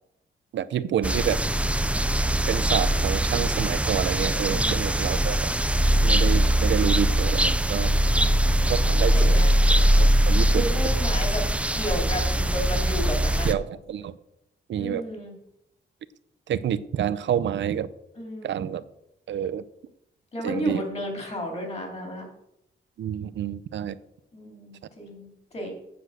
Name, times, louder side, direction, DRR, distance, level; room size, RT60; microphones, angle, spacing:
voice 1, 0.5-1.4 2.4-5.5 6.0-7.9 8.7-9.4 9.7-10.9 13.4-14.1 14.7-15.0 16.5-17.9 18.4-18.8 19.3-19.6 20.4-20.8 23.0-24.0, right 9 dB, 70° right, 15 dB, 0.6 m, -28 dB
sound 1, 1.0-13.5, right 1 dB, 5° right, 0.4 m, -22 dB
voice 2, 4.5-5.1 7.6-8.4 8.7-9.5 10.3-11.5 11.7-13.5 14.8-15.3 18.2-18.7 20.3-22.3 24.3-25.7, equal, 35° left, 1 dB, 2.9 m, -33 dB
7.9 x 7.7 x 6.3 m, 0.80 s
wide cardioid pair, 170°, 20 cm